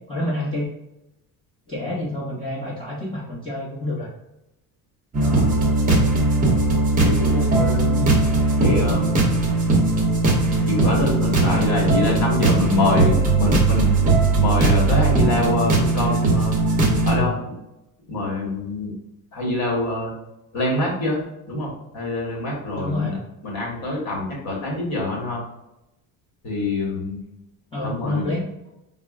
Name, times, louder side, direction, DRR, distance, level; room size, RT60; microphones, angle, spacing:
voice 1, 0.1-0.7 1.7-4.1 8.0-8.2 22.7-23.2 27.7-28.4, left 1 dB, 15° left, -9 dB, 0.8 m, -28 dB
sound 1, 5.1-17.2, right 2 dB, 25° right, 0.7 m, -19 dB
voice 2, 5.2-5.6 7.0-7.9 8.5-9.1 10.6-16.5 17.0-17.5 18.1-18.9 19.3-20.1 20.5-21.2 21.5-23.2 23.4-25.4 26.4-27.2 27.8-28.3, left 2 dB, 50° left, -2 dB, 1.5 m, -25 dB
4.3 x 2.0 x 2.4 m, 0.89 s
cardioid pair, 150°, 36 cm